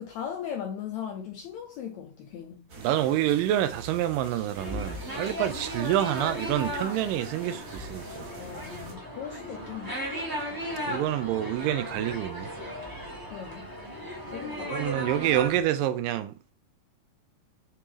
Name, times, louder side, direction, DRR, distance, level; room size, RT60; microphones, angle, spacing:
voice 1, 0.0-2.7 5.6-5.7 8.4-10.0 13.3-13.7 14.3-14.8, left 8 dB, 85° left, 1.6 m, -38 dB
sound 1, 2.7-8.9, right 2 dB, 50° right, 1.1 m, -46 dB
voice 2, 2.8-8.3 10.9-12.5 14.7-16.3, right 12 dB, 80° right, 2.1 m, -27 dB
sound 2, 4.5-15.6, equal, 30° right, 0.4 m, -36 dB
8.2 x 3.7 x 3.3 m
omnidirectional pair, 4.1 m